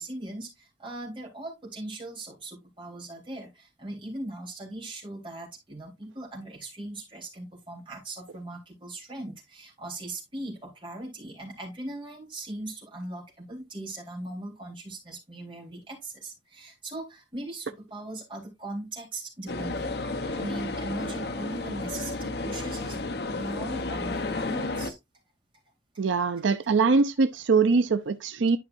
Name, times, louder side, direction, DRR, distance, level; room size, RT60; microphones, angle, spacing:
voice 1, 0.0-20.0 20.3-25.0 25.9-26.1, right 2 dB, 25° right, 3.8 m, -39 dB
sound 1, 19.5-24.9, left 2 dB, 55° left, 0.8 m, -32 dB
voice 2, 26.0-28.6, right 4 dB, 80° right, 0.5 m, -23 dB
11.5 x 5.6 x 2.5 m
head